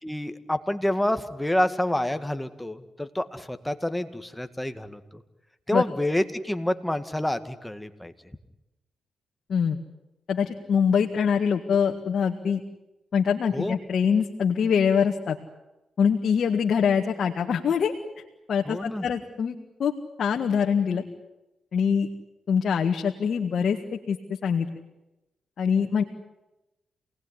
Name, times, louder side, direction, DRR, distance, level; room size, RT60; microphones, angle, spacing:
voice 1, 0.0-5.2 5.7-8.1 13.5-13.8 18.7-19.1, left 1 dB, 10° left, 9 dB, 2.0 m, -28 dB
voice 2, 10.3-12.6 13.1-15.4 16.0-17.9 18.5-19.9 20.2-21.0 21.7-22.1 22.5-23.8 24.1-24.2 24.4-24.7 25.6-26.0, left 7 dB, 65° left, 2 dB, 1.9 m, -24 dB
28.0 x 19.0 x 10.0 m, 0.98 s
cardioid pair, 65°, 0 cm